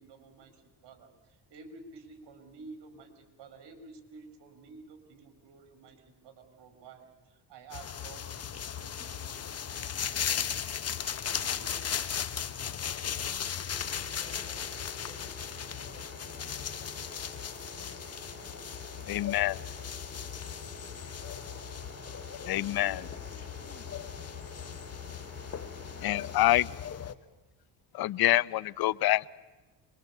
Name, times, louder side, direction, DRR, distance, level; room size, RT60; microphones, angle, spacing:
voice 1, 0.0-10.7 11.4-11.9, right 4 dB, 65° right, 8 dB, 4.6 m, -52 dB
sound 1, 7.7-27.1, left 8 dB, 35° left, 1.2 m, -37 dB
voice 2, 12.5-16.6, equal, 10° left, 3 dB, 5.2 m, -61 dB
sound 2, 13.7-26.5, right 3 dB, 20° right, 3.6 m, -50 dB
voice 3, 19.1-19.6 22.5-23.1 26.0-26.7 27.9-29.3, left 15 dB, 55° left, 20 dB, 0.7 m, -26 dB
24.5 x 22.0 x 8.3 m, 1.1 s
cardioid pair, 95°, 44 cm